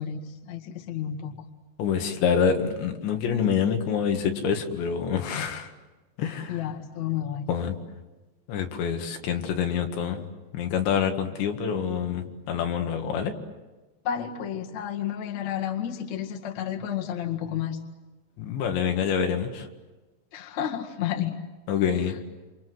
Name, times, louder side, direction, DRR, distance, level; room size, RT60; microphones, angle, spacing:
voice 1, 0.0-1.4 5.3-5.6 6.5-7.5 14.0-17.8 20.3-21.3 22.1-22.2, left 9 dB, 50° left, 2 dB, 2.7 m, -31 dB
voice 2, 1.8-5.7 6.2-6.6 7.5-7.7 8.5-10.3 10.5-13.3 18.4-19.7 21.7-22.2, left 7 dB, 80° left, 4 dB, 4.2 m, -26 dB
28.0 x 27.0 x 7.8 m, 1.2 s
omnidirectional pair, 5.1 m